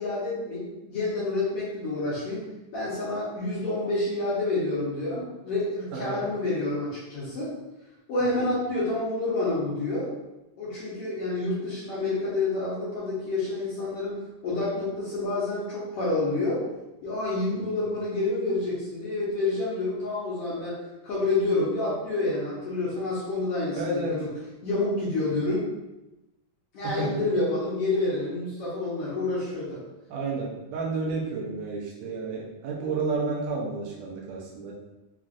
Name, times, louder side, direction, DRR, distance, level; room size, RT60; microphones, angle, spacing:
voice 1, 0.0-2.5 2.7-7.6 8.1-10.1 10.6-14.2 14.4-16.6 17.0-20.8 21.0-24.3 24.6-25.7 26.7-29.8, left 2 dB, 65° left, -9 dB, 1.6 m, -28 dB
voice 2, 5.9-6.2 8.2-8.3 17.5-17.8 23.7-24.3 26.8-27.2 30.1-34.7, right 3 dB, 75° right, -2 dB, 1.8 m, -31 dB
5.6 x 2.4 x 2.5 m, 1.0 s
omnidirectional pair, 3.6 m